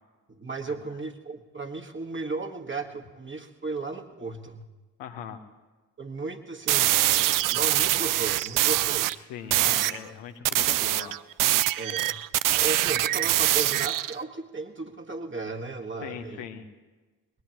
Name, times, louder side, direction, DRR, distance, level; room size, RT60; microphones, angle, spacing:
voice 1, 0.3-4.7 6.0-9.1 9.7-9.8 11.7-12.1 12.5-16.5, right 3 dB, 25° right, 3 dB, 1.6 m, -35 dB
voice 2, 5.0-5.4 9.3-11.2 16.0-16.7, left 8 dB, 65° left, 6 dB, 1.1 m, -39 dB
sound 1, 6.7-9.2 9.5-10.0 10.4-14.1, right 15 dB, 45° right, 0.5 m, -24 dB
20.5 x 20.0 x 3.0 m, 1.3 s
figure-of-eight pair, 40°, 46 cm